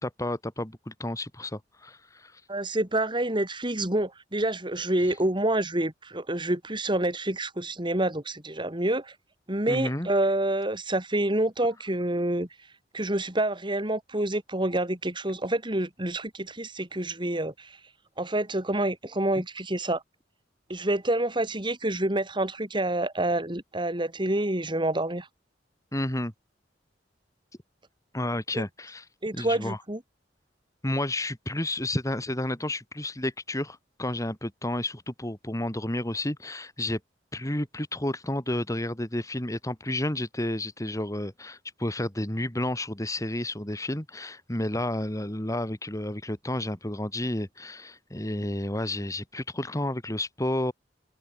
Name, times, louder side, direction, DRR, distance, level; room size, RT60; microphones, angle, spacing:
voice 1, 0.0-2.4 9.7-10.1 25.9-26.3 28.1-29.0 29.3-29.8 30.8-37.0 37.3-50.7, left 1 dB, 20° left, 2.6 m, -31 dB
voice 2, 2.5-9.1 9.5-12.5 12.9-17.8 18.2-20.0 20.7-25.3 28.5-28.6 29.2-30.0, right 1 dB, 25° right, 3.5 m, -27 dB
open air
head